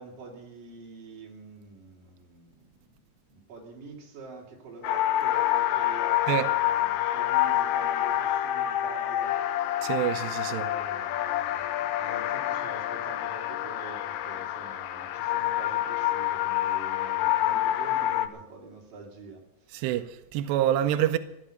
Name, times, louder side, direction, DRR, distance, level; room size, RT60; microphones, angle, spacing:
voice 1, 0.0-3.0 3.3-9.4 10.4-19.8, right 4 dB, 45° right, 4.3 m, -46 dB
sound 1, 4.8-18.3, left 13 dB, 80° left, 2.5 m, -27 dB
voice 2, 9.8-10.6 19.7-21.2, right 12 dB, 85° right, 2.4 m, -26 dB
16.0 x 12.0 x 6.6 m
omnidirectional pair, 5.8 m